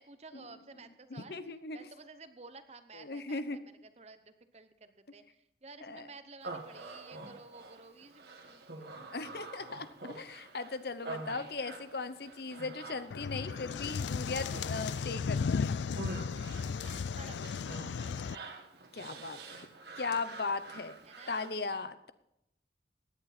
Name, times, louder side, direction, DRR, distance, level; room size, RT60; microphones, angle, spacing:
voice 1, 0.0-9.0 17.1-17.4 21.0-21.5, right 3 dB, 35° right, 10 dB, 0.9 m, -53 dB
voice 2, 1.1-1.8 3.0-3.6 5.8-6.1 9.0-15.8 18.9-19.7 20.0-21.0 21.3-22.1, left 3 dB, 60° left, 12 dB, 0.8 m, -38 dB
Human voice, 6.4-21.6, right 2 dB, 65° right, 1.6 m, -47 dB
sound 1, 13.1-18.4, left 5 dB, 85° left, 0.4 m, -35 dB
16.5 x 10.5 x 4.2 m, 0.82 s
head